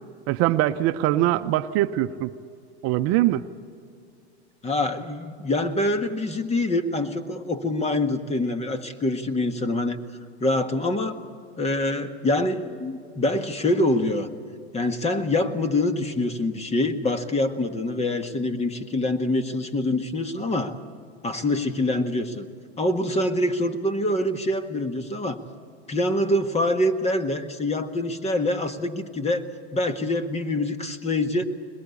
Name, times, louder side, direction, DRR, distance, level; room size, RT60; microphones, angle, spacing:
voice 1, 0.3-2.3 2.8-3.4, right 14 dB, 45° right, 10 dB, 0.9 m, -22 dB
voice 2, 4.6-10.0 10.4-11.2 11.6-14.3 14.7-20.8 21.2-22.5 22.8-25.4 25.9-29.5 29.7-31.4, left 1 dB, 20° left, 9 dB, 1.6 m, -25 dB
22.0 x 21.0 x 8.4 m, 2.3 s
hypercardioid pair, 110°, 32 cm